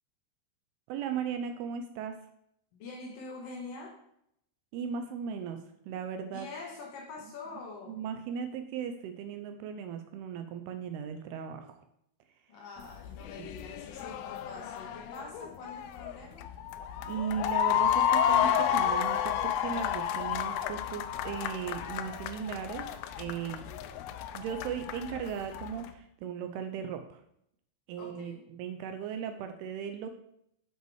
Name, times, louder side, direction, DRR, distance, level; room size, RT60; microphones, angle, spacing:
voice 1, 0.9-2.2 4.7-6.5 7.9-11.8 13.4-13.5 17.1-22.9 23.2-23.6 24.3-27.2 27.9-30.2, right 7 dB, 80° right, 7 dB, 2.4 m, -37 dB
voice 2, 2.7-4.0 6.3-8.0 12.5-16.5 23.5-24.1 28.0-28.5, left 3 dB, 70° left, 0 dB, 2.4 m, -45 dB
sound 1, 12.8-25.9, left 9 dB, 85° left, 2.1 m, -31 dB
7.7 x 5.4 x 4.7 m, 0.74 s
omnidirectional pair, 4.9 m